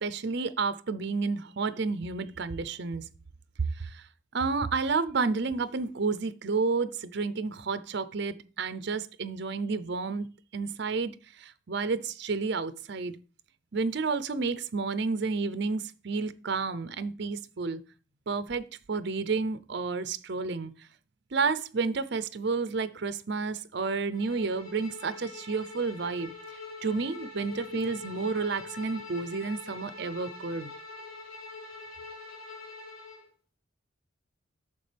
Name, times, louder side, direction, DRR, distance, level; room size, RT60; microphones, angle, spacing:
voice 1, 0.0-3.0 3.8-4.0 4.3-10.3 10.5-11.1 11.4-13.1 13.7-17.8 18.3-20.7 21.3-26.3 26.8-30.7, right 4 dB, 55° right, 0.6 m, -31 dB
Bowed string instrument, 24.1-33.3, left 3 dB, 85° left, 3.4 m, -44 dB
9.5 x 6.7 x 3.4 m
head